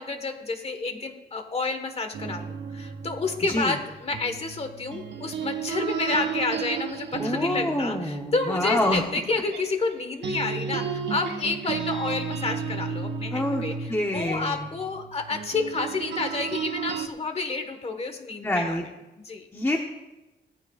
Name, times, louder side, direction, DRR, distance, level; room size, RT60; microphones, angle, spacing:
voice 1, 0.0-18.8 19.2-19.5, left 3 dB, 35° left, 6 dB, 1.4 m, -30 dB
sound 1, 2.1-9.9 10.2-17.1, right 6 dB, 75° right, 1.5 m, -33 dB
voice 2, 7.2-9.0 13.3-13.6 13.9-14.6 18.4-18.8 19.5-19.8, left 1 dB, 10° left, 1 dB, 0.9 m, -26 dB
17.5 x 14.5 x 2.4 m, 1.0 s
wide cardioid pair, 155°, 18 cm